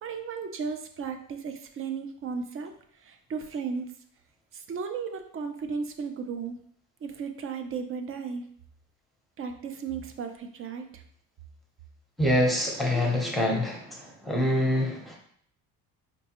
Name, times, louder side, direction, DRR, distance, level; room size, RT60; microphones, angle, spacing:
voice 1, 0.0-2.7 3.0-3.9 4.5-6.5 7.0-8.4 9.4-11.0, right 5 dB, 35° right, 6 dB, 0.4 m, -35 dB
voice 2, 12.2-15.2, left 1 dB, ahead, -2 dB, 0.7 m, -25 dB
4.1 x 2.2 x 2.9 m, 0.64 s
cardioid pair, 115°, 37 cm